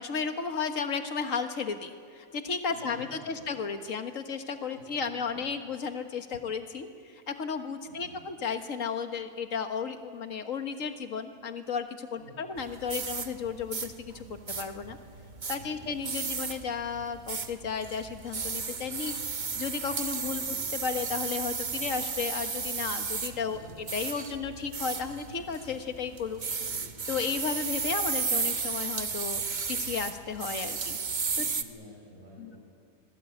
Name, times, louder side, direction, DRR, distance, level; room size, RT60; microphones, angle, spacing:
voice 1, 0.0-15.0 15.5-19.2 19.5-20.6 20.8-26.4 27.1-29.4 29.7-31.0 31.4-31.5 32.4-32.5, left 6 dB, 60° left, 7 dB, 1.8 m, -34 dB
voice 2, 2.7-3.5 4.7-5.0 7.9-8.2 12.2-12.4 15.6-15.9 20.3-20.6 23.5-23.8 26.6-26.9 31.3-32.6, left 1 dB, 55° right, -3 dB, 5.6 m, -51 dB
sound 1, 12.6-31.6, right 5 dB, 35° right, 0.9 m, -34 dB
25.5 x 20.5 x 8.6 m, 2.1 s
omnidirectional pair, 1.6 m